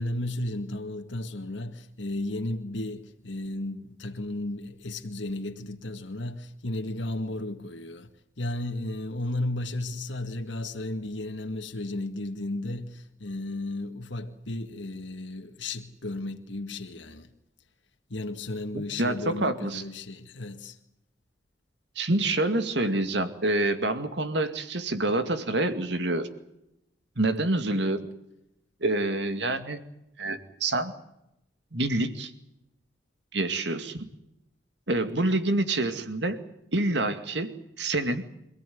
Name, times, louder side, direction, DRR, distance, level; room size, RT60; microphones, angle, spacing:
voice 1, 0.0-8.1 8.4-17.3 18.1-20.8, left 2 dB, 85° left, 2.0 m, -34 dB
voice 2, 18.7-19.8 22.0-26.3 27.2-28.0 28.8-29.8 30.2-30.9 31.7-32.3 33.3-34.1 34.9-36.4 36.7-37.5 37.8-38.2, right 2 dB, 70° right, 2.3 m, -27 dB
26.5 x 16.5 x 9.5 m
head